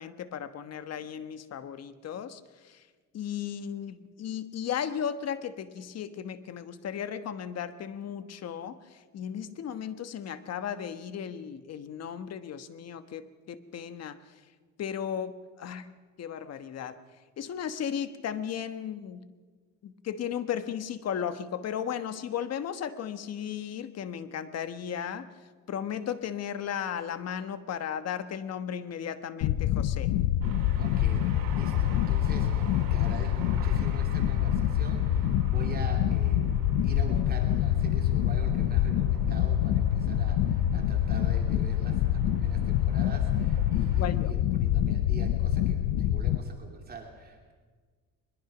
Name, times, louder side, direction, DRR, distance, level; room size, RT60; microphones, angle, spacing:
voice 1, 0.0-2.8 3.1-14.2 14.8-15.9 16.2-17.0 17.4-19.2 19.8-25.3 25.7-30.1 43.9-44.4, left 8 dB, 45° left, 11 dB, 1.3 m, -35 dB
sound 1, 29.4-46.4, left 11 dB, 90° left, 0.9 m, -26 dB
sound 2, 30.4-44.1, right 7 dB, 80° right, 3.8 m, -43 dB
voice 2, 30.8-31.2 31.5-36.5 36.8-47.5, right 3 dB, 25° right, 2 dB, 3.0 m, -45 dB
22.5 x 21.5 x 6.1 m, 1.5 s
cardioid pair, 130°, 34 cm